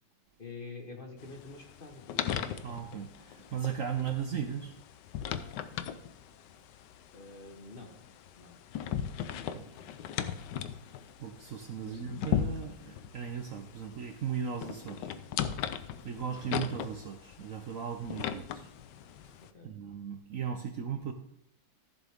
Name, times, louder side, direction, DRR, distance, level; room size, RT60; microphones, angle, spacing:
voice 1, 0.4-2.4 7.1-7.9 8.3-8.6 11.8-12.0 19.5-19.7, left 3 dB, 35° left, 3 dB, 1.4 m, -47 dB
sound 1, 1.2-19.5, left 9 dB, 80° left, 1.3 m, -38 dB
voice 2, 2.6-4.8 9.5-9.7 11.2-15.1 16.0-18.7 19.6-21.1, right 7 dB, 60° right, 6 dB, 0.9 m, -37 dB
14.0 x 7.5 x 3.6 m, 0.79 s
omnidirectional pair, 1.9 m